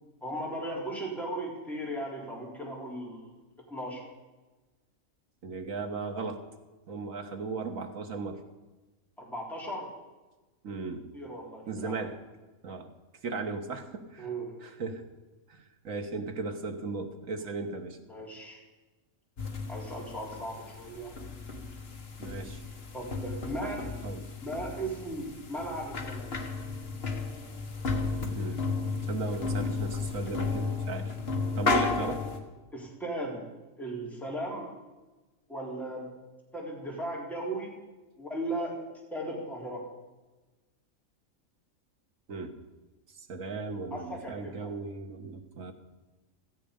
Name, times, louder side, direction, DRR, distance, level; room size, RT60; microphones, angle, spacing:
voice 1, 0.2-3.3 3.7-4.1 9.2-9.9 11.1-11.9 14.2-14.6 18.1-18.6 19.7-21.1 22.9-23.8 24.4-26.4 32.7-33.5 33.8-34.7 35.5-36.1 36.5-37.7 38.2-38.8 39.1-39.9 43.9-44.7, right 1 dB, ahead, -3 dB, 3.7 m, -37 dB
voice 2, 5.4-6.4 6.9-8.4 10.6-11.1 11.7-12.2 12.6-12.9 13.2-14.3 14.6-15.0 15.5-18.0 22.2-22.6 23.6-23.7 24.0-24.3 28.3-28.6 29.1-31.1 31.6-32.2 42.3-42.6 43.1-45.7, right 4 dB, 85° right, 5 dB, 1.8 m, -36 dB
sound 1, 19.4-32.4, left 4 dB, 50° left, 1.7 m, -33 dB
16.0 x 14.5 x 5.2 m, 1.2 s
omnidirectional pair, 1.3 m